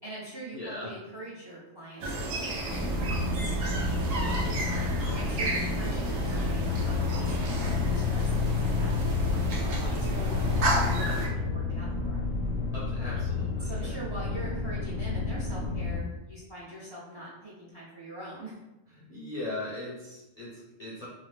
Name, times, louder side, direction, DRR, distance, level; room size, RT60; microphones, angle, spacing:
voice 1, 0.0-4.7 5.1-12.2 13.0-13.3 13.6-18.5, right 1 dB, 30° right, -6 dB, 0.5 m, -43 dB
voice 2, 0.5-0.9 12.7-13.9 18.9-21.1, left 1 dB, 50° left, -7 dB, 0.4 m, -39 dB
sound 1, 2.0-11.3, right 1 dB, 80° right, 1.0 m, -32 dB
sound 2, 2.7-16.0, left 3 dB, 10° left, 0.7 m, -30 dB
2.7 x 2.1 x 3.2 m, 0.96 s
omnidirectional pair, 1.3 m